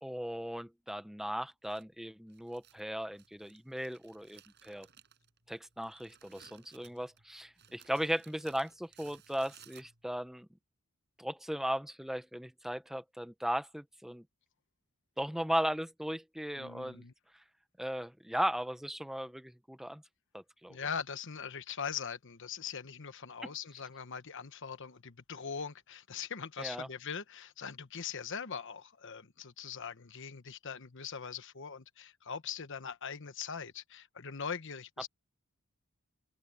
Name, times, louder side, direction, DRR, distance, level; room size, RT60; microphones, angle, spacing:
voice 1, 0.0-4.9 5.5-10.5 11.2-14.2 15.2-17.0 17.8-20.0 20.3-20.8 23.4-23.5 26.6-26.9, equal, ahead, 0.8 m, -37 dB
Crumpling crinkling, 1.6-10.3, right 9 dB, 55° right, 6.6 m, -61 dB
voice 2, 16.6-17.1 20.7-35.1, left 6 dB, 60° left, 1.2 m, -41 dB
open air
head